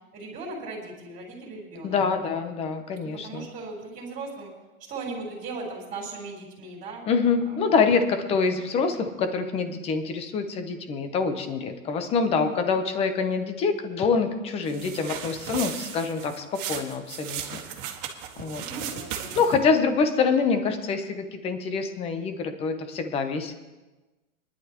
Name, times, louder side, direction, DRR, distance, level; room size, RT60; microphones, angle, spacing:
voice 1, 0.1-2.0 3.2-4.5 4.9-7.0 7.5-7.8 18.6-19.4, right 3 dB, 20° right, -3 dB, 3.7 m, -38 dB
voice 2, 1.8-3.5 7.1-17.6 18.4-18.6 19.4-23.5, left 5 dB, 15° left, 8 dB, 0.8 m, -25 dB
sound 1, 14.7-19.7, right 9 dB, 40° right, 1.8 m, -36 dB
22.0 x 11.0 x 3.0 m, 1.2 s
hypercardioid pair, 155°, 41 cm